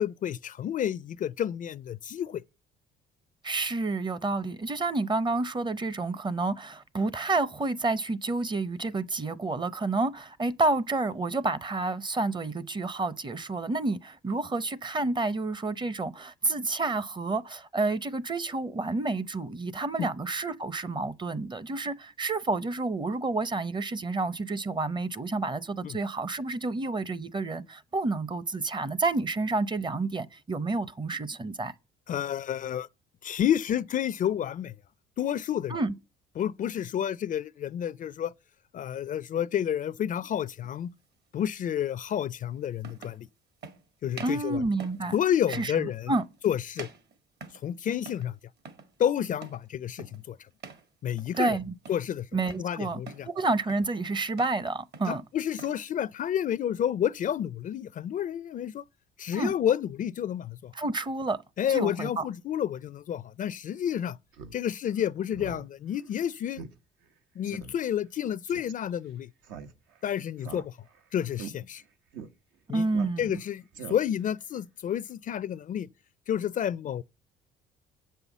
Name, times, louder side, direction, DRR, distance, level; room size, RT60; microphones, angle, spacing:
voice 1, 0.0-2.4 20.0-20.1 25.8-26.0 32.1-32.9 33.2-34.7 35.2-35.8 36.4-38.3 38.7-40.9 41.3-43.3 44.0-44.6 45.1-46.1 46.4-46.9 47.6-48.3 49.0-50.4 51.0-51.6 51.9-52.3 52.6-53.3 55.1-58.8 59.2-60.7 61.6-64.2 64.5-66.6 67.4-69.3 70.0-70.7 71.1-71.8 72.7-72.8 73.2-73.6 73.9-75.9 76.3-77.0, left 10 dB, 45° left, 0.4 m, -30 dB
voice 2, 3.4-31.7 35.7-35.9 44.2-45.2 45.5-46.2 51.4-51.7 52.3-55.2 59.3-59.5 60.7-61.4 61.7-62.3 72.7-73.3, right 3 dB, 25° right, 0.7 m, -29 dB
sound 1, 40.6-40.8 42.1-42.2 42.8-43.2 43.6-43.8 44.1-44.5 44.8-45.1 45.5-45.8 46.1-46.5 46.8-47.7 48.0-48.3 48.6-48.9 49.4-49.7 50.0-50.3 50.6-50.9 51.2-51.5 51.8-52.7 53.1-53.3 53.7-54.0 54.3-54.6 54.9-55.8, right 5 dB, 60° right, 1.7 m, -46 dB
Speech synthesizer, 64.3-64.6 64.9-65.0 65.3-65.6 66.0-66.1 66.6-66.7 67.0-67.1 67.5-67.7 68.5-68.7 69.4-70.0 70.4-71.0 71.3-71.5 72.1-72.3 72.9-73.4 73.7-74.3, right 6 dB, 80° right, 1.1 m, -42 dB
7.7 x 5.6 x 7.2 m
supercardioid pair, 85°, 19 cm